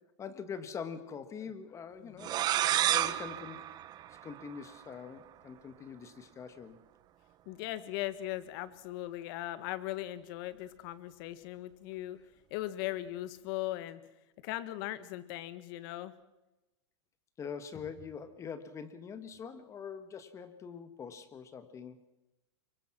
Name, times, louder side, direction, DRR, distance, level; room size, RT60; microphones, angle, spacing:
voice 1, 0.2-2.4 2.9-3.7 4.2-6.8 17.4-22.0, left 6 dB, 20° left, 12 dB, 1.5 m, -44 dB
voice 2, 2.0-2.3 7.4-12.2 12.5-14.0 14.4-16.1, left 15 dB, 50° left, 14 dB, 1.7 m, -39 dB
sound 1, 2.2-4.8, right 12 dB, 25° right, 0.9 m, -31 dB
24.0 x 22.0 x 6.1 m, 0.98 s
supercardioid pair, 145°, 15 cm